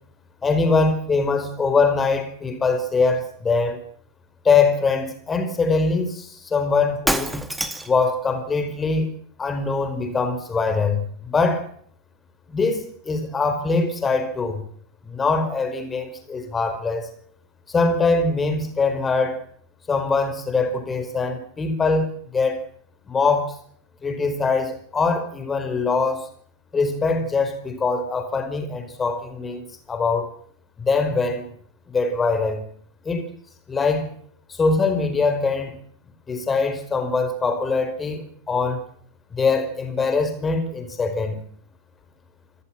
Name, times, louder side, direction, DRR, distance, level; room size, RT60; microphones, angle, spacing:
voice 1, 0.4-3.8 4.4-7.4 7.8-9.1 9.4-11.6 12.5-14.6 15.0-17.1 17.7-19.4 19.9-22.6 23.1-23.6 24.0-26.3 26.7-30.3 30.8-31.5 31.9-32.6 33.0-33.3 33.7-34.1 34.5-35.8 36.3-38.8 39.3-41.4, left 4 dB, 15° left, 8 dB, 5.0 m, -22 dB
Shatter, 7.1-8.0, right 1 dB, 5° right, 2.1 m, -25 dB
28.5 x 15.0 x 7.7 m, 0.62 s
figure-of-eight pair, 90°, 0 cm